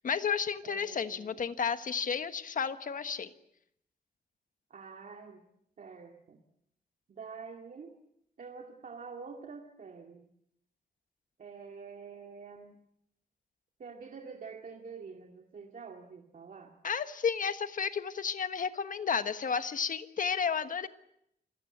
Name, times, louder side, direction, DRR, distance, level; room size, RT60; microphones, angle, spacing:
voice 1, 0.0-3.3 16.8-20.9, left 6 dB, 55° left, 10 dB, 1.3 m, -32 dB
voice 2, 0.6-1.5 4.7-5.4 5.8-6.4 7.1-8.0 8.4-10.2 11.4-12.8 13.8-16.8, right 5 dB, 55° right, 2 dB, 2.2 m, -47 dB
27.5 x 17.0 x 9.1 m, 0.77 s
wide cardioid pair, 150°, 16 cm